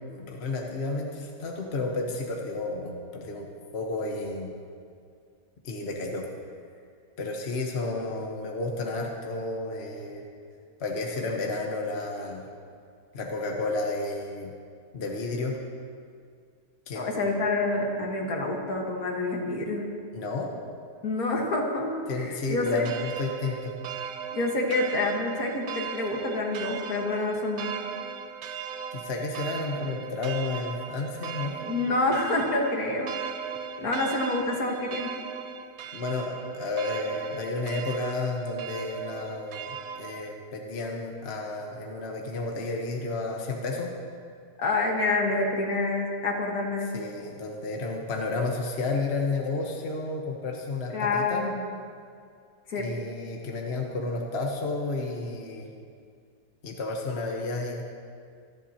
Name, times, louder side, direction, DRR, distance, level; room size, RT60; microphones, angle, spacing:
voice 1, 0.1-3.5 3.7-4.5 5.6-6.3 7.2-10.2 10.8-12.5 13.1-14.5 14.9-15.6 16.9-17.2 20.1-20.5 22.1-23.7 28.9-31.6 35.9-39.7 40.0-43.9 46.9-51.4 52.8-55.7 56.6-57.8, left 3 dB, 40° left, 0 dB, 1.4 m, -31 dB
voice 2, 17.0-19.8 21.0-22.8 24.3-27.7 31.6-33.1 33.8-35.2 44.6-47.0 50.9-51.6 52.7-52.9, left 2 dB, 60° left, 0 dB, 2.0 m, -27 dB
sound 1, 22.6-40.3, right 7 dB, 65° right, 1.0 m, -38 dB
26.5 x 10.5 x 2.9 m, 2.2 s
omnidirectional pair, 1.8 m